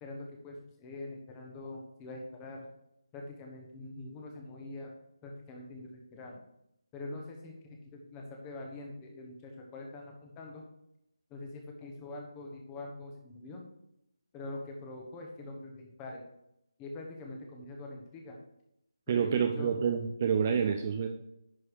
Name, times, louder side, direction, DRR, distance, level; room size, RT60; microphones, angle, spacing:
voice 1, 0.0-2.6 3.1-4.9 5.2-6.4 6.9-10.6 11.3-13.6 14.3-16.2 16.8-18.4 19.1-19.8, left 2 dB, 15° left, 1 dB, 1.2 m, -44 dB
voice 2, 19.1-21.1, right 7 dB, 30° right, 6 dB, 0.6 m, -28 dB
10.5 x 4.8 x 4.8 m, 0.83 s
figure-of-eight pair, 160°, 3 cm